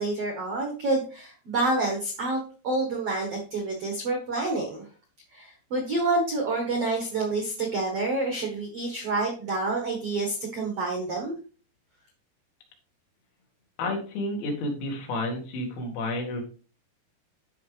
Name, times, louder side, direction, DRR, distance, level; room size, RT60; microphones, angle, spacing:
voice 1, 0.0-4.8 5.3-11.3, right 2 dB, 75° right, 1 dB, 1.4 m, -28 dB
voice 2, 13.8-16.4, left 1 dB, 85° left, 1 dB, 4.5 m, -30 dB
12.5 x 5.0 x 3.3 m, 0.38 s
omnidirectional pair, 5.2 m